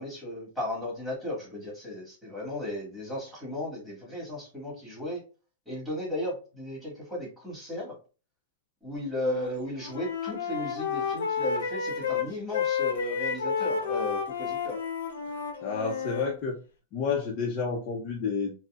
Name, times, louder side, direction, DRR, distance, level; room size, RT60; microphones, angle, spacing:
voice 1, 0.0-5.2 5.6-7.9 8.8-14.8, left 1 dB, ahead, -4 dB, 1.6 m, -35 dB
Wind instrument woodwind instrument, 9.1-9.5 9.8-16.3, left 6 dB, 85° left, 0.8 m, -31 dB
voice 2, 15.6-16.6 16.9-18.6, left 5 dB, 40° left, 0 dB, 0.6 m, -30 dB
4.0 x 2.0 x 2.3 m, 0.34 s
hypercardioid pair, 145°, 0 cm